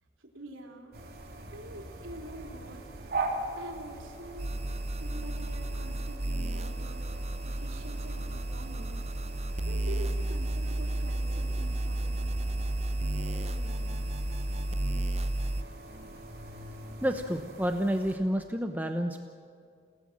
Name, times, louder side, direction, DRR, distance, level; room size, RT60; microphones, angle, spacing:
voice 1, 0.2-1.0 1.4-2.8 3.6-4.6 5.0-7.1 7.4-9.2 9.7-12.3 13.0-14.0, right 1 dB, 90° right, 1 dB, 4.0 m, -46 dB
sound 1, 0.9-18.2, right 2 dB, 50° right, 3.6 m, -42 dB
sound 2, 4.4-15.6, right 1 dB, 35° right, 0.7 m, -32 dB
voice 2, 17.0-19.2, equal, 10° right, 5 dB, 0.9 m, -29 dB
29.0 x 18.0 x 7.6 m, 2.3 s
head